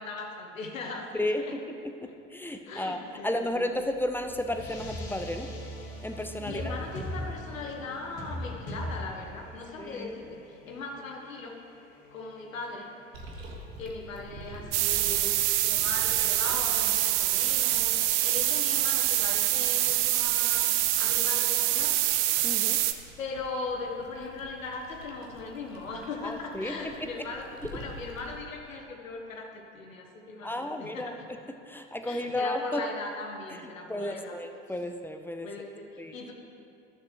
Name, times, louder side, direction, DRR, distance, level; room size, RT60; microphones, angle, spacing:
voice 1, 0.0-1.1 1.4-1.6 2.6-3.6 6.4-11.6 12.1-12.9 13.8-15.3 15.6-22.0 23.2-31.3 32.0-34.4 35.4-36.3, left 3 dB, 85° left, 1 dB, 1.2 m, -39 dB
voice 2, 1.8-5.5 6.0-6.7 9.8-10.1 22.4-22.8 26.2-27.3 27.6-27.7 30.4-31.4 31.7-32.8 33.5-33.6 33.9-35.5 36.0-36.1, left 1 dB, 5° left, 5 dB, 0.5 m, -33 dB
sound 1, 3.4-14.1, left 1 dB, 50° left, 1.9 m, -41 dB
sound 2, 13.1-28.4, right 1 dB, 80° right, 1.2 m, -47 dB
sound 3, 14.7-22.9, right 14 dB, 65° right, 0.6 m, -25 dB
14.0 x 6.7 x 3.2 m, 2.6 s
figure-of-eight pair, 70°, 39 cm